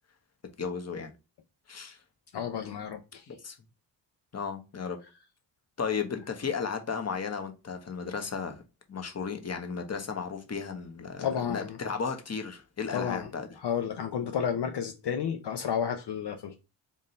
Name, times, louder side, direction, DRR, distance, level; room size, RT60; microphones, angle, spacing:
voice 1, 0.6-1.1 1.7-2.0 3.3-3.6 4.3-5.0 5.8-8.6 8.9-13.5, left 5 dB, 35° left, 1.2 m, -34 dB
voice 2, 2.3-3.2 11.2-11.8 12.9-13.3 13.6-16.6, left 8 dB, 60° left, 0.8 m, -31 dB
3.6 x 2.6 x 4.3 m
cardioid pair, 60°, 46 cm